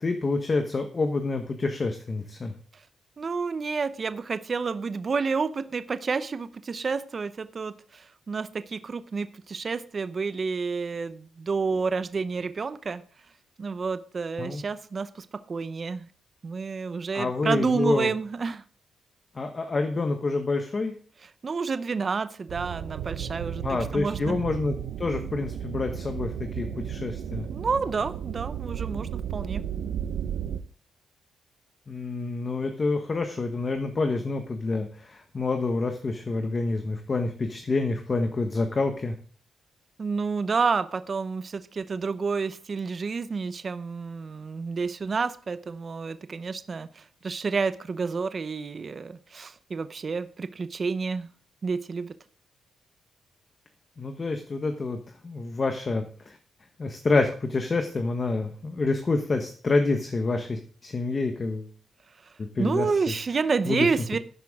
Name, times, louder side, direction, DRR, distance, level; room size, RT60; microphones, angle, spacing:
voice 1, 0.0-2.5 14.4-14.6 17.1-18.1 19.3-20.9 23.6-27.5 31.9-39.1 54.0-55.0 55.2-56.4 56.8-61.7 62.4-62.9 63.7-64.0, left 3 dB, 25° left, 6 dB, 1.1 m, -27 dB
voice 2, 3.2-13.0 13.6-16.1 16.4-18.6 21.4-24.4 27.5-29.6 40.0-51.3 51.6-52.1 62.2-62.3 62.6-64.2, right 4 dB, 30° right, 12 dB, 0.7 m, -29 dB
sound 1, 22.5-30.6, right 9 dB, 85° right, 1.0 m, -34 dB
12.5 x 10.5 x 3.6 m, 0.43 s
wide cardioid pair, 165°, 0 cm